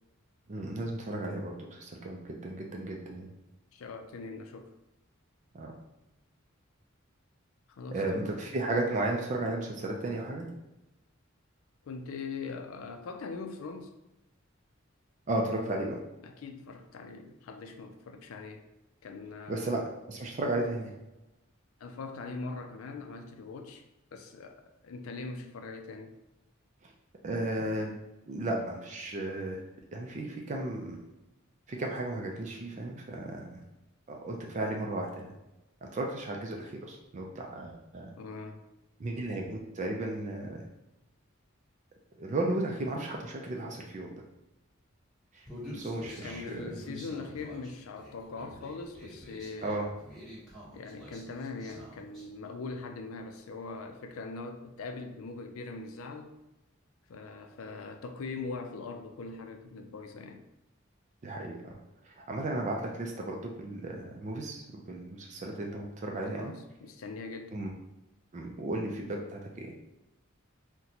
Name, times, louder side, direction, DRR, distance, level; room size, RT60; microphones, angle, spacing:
voice 1, 0.5-3.3 5.5-5.7 7.9-10.5 15.3-16.0 19.5-19.8 20.1-20.9 26.8-26.9 27.2-27.9 28.3-29.6 29.9-31.0 31.7-33.6 34.1-35.3 35.8-38.1 39.0-40.7 42.2-44.1 45.3-45.5 45.7-46.6 49.6-49.9 61.2-61.7 62.0-66.5 67.5-67.7 68.3-69.7, right 2 dB, 35° right, 1 dB, 0.4 m, -34 dB
voice 2, 3.7-4.7 7.7-8.4 11.8-13.9 16.2-18.7 19.0-19.9 21.8-23.8 24.1-26.1 38.2-38.6 46.2-49.9 50.7-56.3 57.1-60.4 66.2-67.6, left 4 dB, 90° left, 5 dB, 0.4 m, -41 dB
Human voice, 45.5-52.3, equal, ahead, 1.2 m, -47 dB
3.9 x 2.2 x 2.8 m, 0.97 s
head